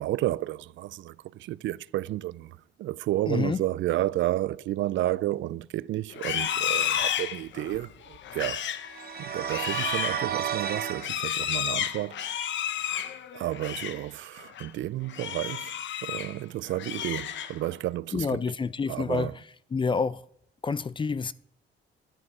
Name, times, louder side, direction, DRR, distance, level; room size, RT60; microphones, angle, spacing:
voice 1, 0.0-8.7 9.2-12.3 13.3-18.5 18.9-19.4, right 15 dB, 70° right, 0.4 m, -31 dB
voice 2, 3.3-3.6 18.1-19.3 19.7-20.2 20.6-21.3, left 5 dB, 25° left, 0.5 m, -28 dB
Livestock farm animals working animals, 6.1-14.1 14.4-14.7 15.1-16.4 16.7-17.8, left 10 dB, 70° left, 0.9 m, -32 dB
sound 1, 8.9-11.1, right 8 dB, 50° right, 0.9 m, -31 dB
12.0 x 9.9 x 4.8 m
cardioid pair, 90°, 20 cm